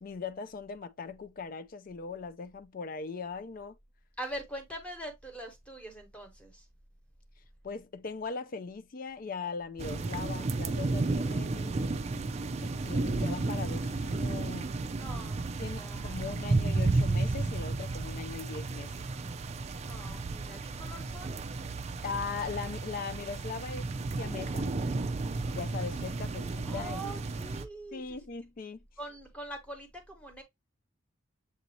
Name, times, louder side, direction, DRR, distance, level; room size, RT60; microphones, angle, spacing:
voice 1, 0.0-3.8 7.6-11.8 12.6-14.7 15.6-19.1 22.0-24.7 25.5-27.1 27.9-28.8, left 5 dB, 45° left, 0.4 m, -40 dB
voice 2, 4.2-6.6 15.0-16.4 19.8-21.5 26.6-28.3 29.0-30.4, right 1 dB, 5° left, 1.2 m, -43 dB
sound 1, 9.8-27.6, right 3 dB, 30° right, 0.4 m, -33 dB
7.0 x 2.7 x 2.8 m
head